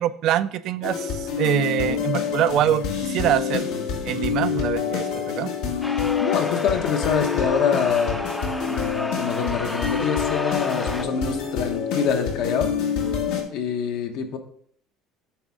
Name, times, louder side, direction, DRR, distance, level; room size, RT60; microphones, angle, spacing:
voice 1, 0.0-3.7 4.0-5.5, right 12 dB, 55° right, 14 dB, 0.4 m, -24 dB
sound 1, 0.8-13.4, left 7 dB, 80° left, 1.8 m, -27 dB
sound 2, 5.8-11.0, left 1 dB, 5° left, 0.5 m, -33 dB
voice 2, 6.2-8.2 8.7-12.7 13.5-14.4, left 6 dB, 65° left, 6 dB, 1.0 m, -25 dB
8.9 x 3.5 x 5.1 m, 0.62 s
cardioid pair, 150°, 0 cm